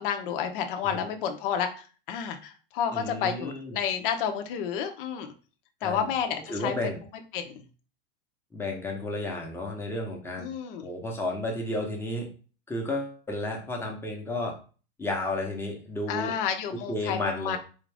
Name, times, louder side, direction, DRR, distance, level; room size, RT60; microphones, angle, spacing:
voice 1, 0.0-5.3 5.8-6.7 7.3-7.6 10.4-10.9 16.1-17.6, left 8 dB, 55° left, 6 dB, 0.7 m, -30 dB
voice 2, 2.9-3.7 5.8-6.1 6.5-7.0 8.5-10.5 10.8-12.3 12.7-14.5 15.0-16.3 16.9-17.6, left 2 dB, 5° left, 0 dB, 0.8 m, -32 dB
4.4 x 2.5 x 3.3 m, 0.36 s
supercardioid pair, 140°, 32 cm